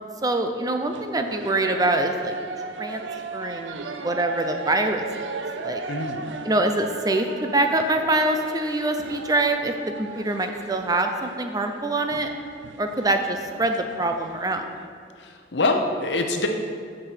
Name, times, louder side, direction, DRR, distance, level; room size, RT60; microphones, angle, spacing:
voice 1, 0.2-2.3 2.8-3.0 3.3-5.1 5.6-5.8 6.4-9.7 10.0-12.3 12.8-14.6, right 2 dB, 20° right, 5 dB, 0.5 m, -24 dB
sound 1, 0.8-14.9, right 3 dB, 85° right, 0.6 m, -36 dB
voice 2, 5.9-6.2 15.2-16.5, left 2 dB, 70° left, 4 dB, 0.9 m, -25 dB
6.4 x 6.1 x 7.3 m, 2.1 s
head